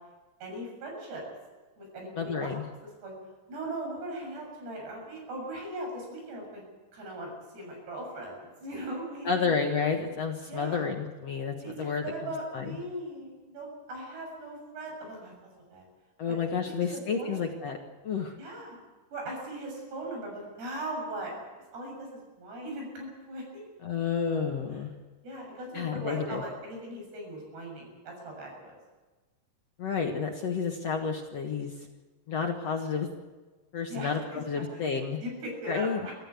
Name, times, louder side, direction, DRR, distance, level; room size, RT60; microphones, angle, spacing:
voice 1, 0.4-1.2 1.8-2.5 3.0-3.1 3.5-6.6 6.9-9.5 10.5-10.8 11.6-15.3 15.7-15.8 16.3-16.4 16.7-17.3 18.4-18.8 19.1-21.3 21.7-23.7 25.2-28.8 33.9-34.6 35.2-36.1, right 1 dB, 85° right, 0 dB, 9.0 m, -39 dB
voice 2, 2.2-2.7 9.2-12.8 16.2-17.8 18.0-18.4 23.8-24.9 25.7-26.4 29.8-31.7 32.3-33.1 33.7-35.2 35.7-36.0, left 6 dB, 55° left, 2 dB, 2.0 m, -30 dB
25.0 x 14.5 x 8.3 m, 1.2 s
omnidirectional pair, 4.6 m